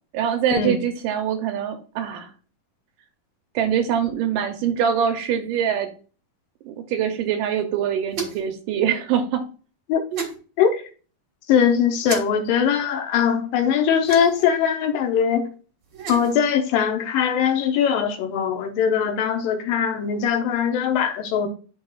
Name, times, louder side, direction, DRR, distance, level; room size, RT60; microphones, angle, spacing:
voice 1, 0.1-2.3 3.6-5.9 6.7-9.5 10.1-10.3, right 8 dB, 80° right, 2.0 m, -24 dB
sound 1, 8.1-8.5 10.1-10.3 12.0-12.2 14.0-14.5 15.8-16.4, right 5 dB, 60° right, 1.1 m, -32 dB
voice 2, 11.5-15.5 16.1-21.5, left 7 dB, 75° left, 2.3 m, -21 dB
11.5 x 4.2 x 2.4 m
omnidirectional pair, 4.4 m